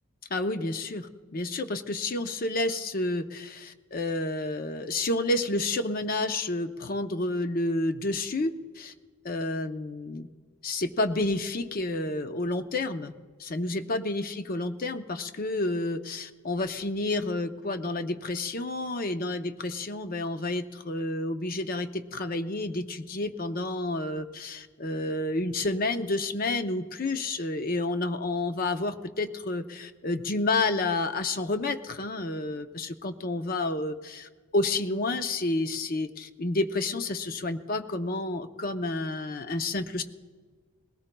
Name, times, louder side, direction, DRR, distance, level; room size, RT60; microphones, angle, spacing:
voice 1, 0.3-8.9 9.2-10.3 10.6-13.1 13.4-34.3 34.5-40.0, left 2 dB, 40° left, 9 dB, 0.6 m, -30 dB
20.5 x 18.0 x 2.2 m, 1.5 s
head